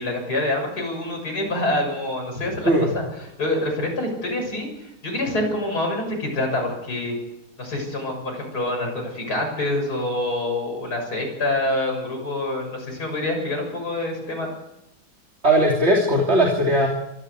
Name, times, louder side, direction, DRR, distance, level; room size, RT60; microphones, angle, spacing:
voice 1, 0.0-3.0 3.4-7.1 7.6-14.5, left 1 dB, 45° left, 1 dB, 7.2 m, -26 dB
voice 2, 15.4-16.9, right 1 dB, 30° right, -1 dB, 3.1 m, -18 dB
23.5 x 14.5 x 8.2 m, 0.91 s
omnidirectional pair, 2.3 m